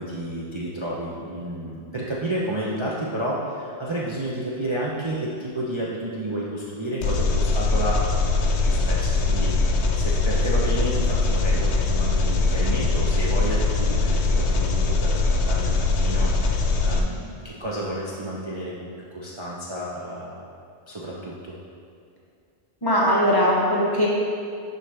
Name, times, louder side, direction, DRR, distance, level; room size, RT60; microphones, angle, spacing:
voice 1, 0.0-20.4 20.9-21.6, right 1 dB, 30° right, -6 dB, 0.7 m, -31 dB
Engine, 7.0-17.0, left 3 dB, 80° left, 1.0 m, -22 dB
voice 2, 22.8-24.1, equal, 20° left, -6 dB, 1.1 m, -20 dB
11.0 x 4.2 x 3.4 m, 2.4 s
omnidirectional pair, 1.1 m